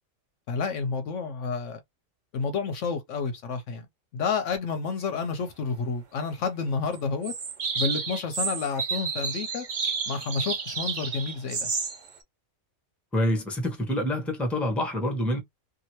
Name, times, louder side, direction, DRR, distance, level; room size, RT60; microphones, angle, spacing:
voice 1, 0.5-1.8 2.3-3.9 4.1-7.3 7.8-9.7 10.1-11.7, left 5 dB, 70° left, 0.9 m, -30 dB
sound 1, 6.9-7.0 7.2-12.1, right 5 dB, 45° right, 0.7 m, -31 dB
voice 2, 13.1-15.4, equal, ahead, 0.8 m, -26 dB
2.8 x 2.5 x 2.9 m
omnidirectional pair, 1.4 m